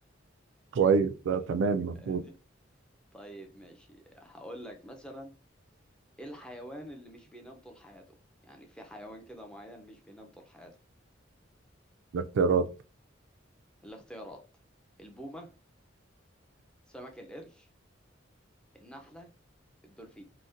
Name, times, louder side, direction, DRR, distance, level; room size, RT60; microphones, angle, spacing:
voice 1, 0.7-2.2 12.1-12.7, right 5 dB, 70° right, 0.3 m, -26 dB
voice 2, 1.9-2.3 3.1-5.3 6.2-8.0 8.4-10.8 13.8-14.4 15.0-15.5 16.9-17.7 18.7-19.3 19.8-20.2, equal, 5° left, 0.5 m, -46 dB
3.9 x 2.1 x 2.5 m
head